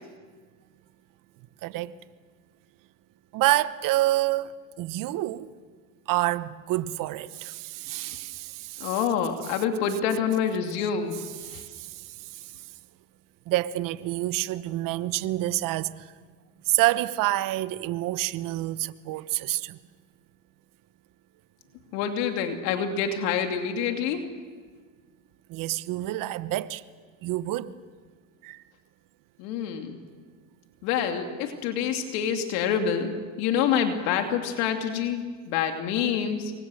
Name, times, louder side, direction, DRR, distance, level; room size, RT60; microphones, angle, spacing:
voice 1, 1.6-2.0 3.3-4.5 4.8-5.5 6.1-9.0 11.4-12.5 13.5-16.1 16.7-19.8 25.5-26.8 27.2-27.7 28.4-28.6, right 16 dB, 50° right, 1.1 m, -28 dB
voice 2, 8.8-11.2 11.4-11.6 21.9-24.2 29.4-30.0 30.8-36.5, left 7 dB, 70° left, 2.8 m, -27 dB
27.5 x 23.5 x 6.4 m
supercardioid pair, 105°, 41 cm